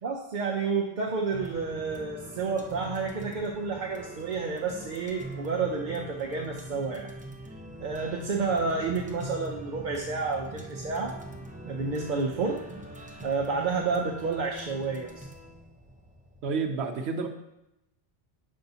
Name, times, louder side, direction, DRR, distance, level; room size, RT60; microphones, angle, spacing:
voice 1, 0.0-7.1 7.8-11.1 11.6-12.6 13.2-15.2, right 4 dB, 55° right, 0 dB, 0.7 m, -30 dB
sound 1, 1.3-16.6, right 1 dB, 10° right, 0.4 m, -43 dB
voice 2, 16.4-17.3, right 5 dB, 80° right, 3 dB, 0.9 m, -29 dB
6.8 x 5.4 x 2.7 m, 0.88 s
omnidirectional pair, 1.1 m